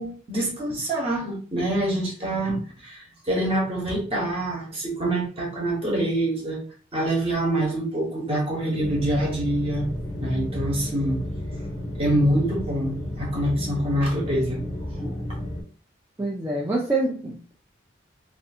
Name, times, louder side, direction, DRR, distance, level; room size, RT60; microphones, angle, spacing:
voice 1, 0.0-6.6 6.9-9.9 10.2-11.2 12.0-14.6, right 1 dB, 30° right, -2 dB, 0.9 m, -25 dB
sound 1, 8.8-15.6, left 1 dB, 10° left, 0.7 m, -32 dB
voice 2, 16.2-17.5, right 2 dB, 10° right, -4 dB, 0.4 m, -26 dB
2.5 x 2.4 x 2.6 m, 0.39 s
head